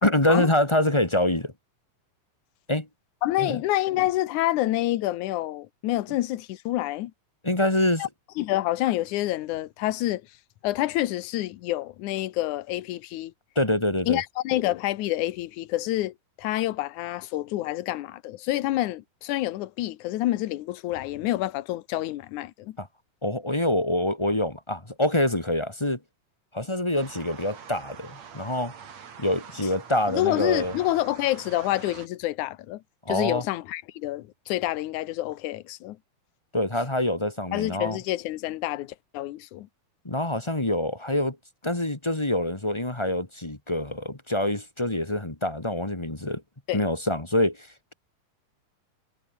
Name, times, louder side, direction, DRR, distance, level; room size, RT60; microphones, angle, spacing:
voice 1, 0.0-1.5 2.7-2.9 3.4-3.6 7.4-8.1 13.5-14.2 22.8-22.9 23.2-26.0 26.5-28.7 29.2-30.7 33.0-33.4 36.5-38.0 40.0-41.4 41.6-46.4 46.7-47.7, left 1 dB, 15° left, 1.1 m, -25 dB
voice 2, 3.2-7.1 8.0-8.1 8.4-10.2 10.6-13.3 14.1-22.8 30.1-32.8 33.1-36.0 37.5-39.7 46.7-46.8, left 15 dB, 70° left, 2.2 m, -28 dB
sound 1, 26.9-32.1, right 7 dB, 55° right, 3.7 m, -44 dB
omnidirectional pair, 3.9 m